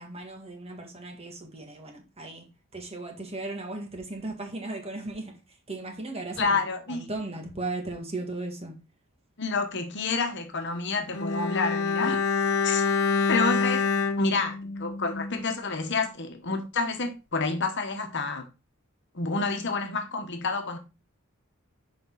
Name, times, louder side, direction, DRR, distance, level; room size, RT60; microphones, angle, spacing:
voice 1, 0.0-2.5 2.7-6.6 6.9-8.7 12.0-12.2, right 2 dB, 30° right, 1.8 m, -36 dB
voice 2, 6.4-7.0 9.4-12.2 12.6-12.8 13.3-13.8 14.2-18.5 19.1-20.8, left 4 dB, 55° left, 1.2 m, -29 dB
Bowed string instrument, 11.1-15.6 15.8-16.0, left 5 dB, 90° left, 0.8 m, -27 dB
6.9 x 5.3 x 3.9 m
head